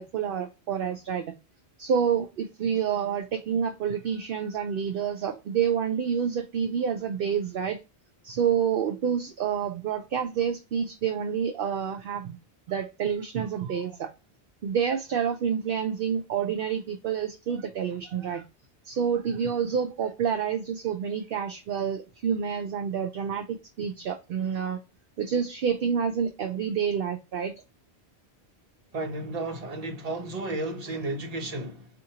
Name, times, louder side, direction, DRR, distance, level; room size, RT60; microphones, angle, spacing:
voice 1, 0.0-1.3 1.8-7.8 8.2-12.4 12.7-14.1 14.6-18.4 18.8-24.8 25.2-27.5, right 7 dB, 65° right, 0.7 m, -28 dB
voice 2, 28.9-31.9, right 2 dB, 40° right, 0.9 m, -33 dB
4.3 x 2.5 x 2.8 m
omnidirectional pair, 1.1 m